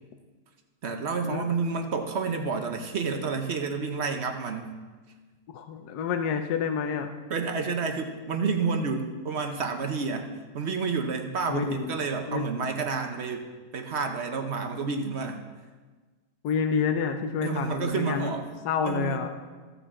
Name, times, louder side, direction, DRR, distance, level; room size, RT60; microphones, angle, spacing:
voice 1, 0.8-4.7 7.3-13.5 13.7-15.4 17.4-18.5 18.8-19.2, right 4 dB, 50° right, 5 dB, 0.8 m, -30 dB
voice 2, 5.5-7.1 11.5-12.0 12.3-12.5 16.4-18.4 18.6-19.3, left 6 dB, 70° left, 6 dB, 1.2 m, -28 dB
15.0 x 6.9 x 3.7 m, 1.4 s
omnidirectional pair, 1.8 m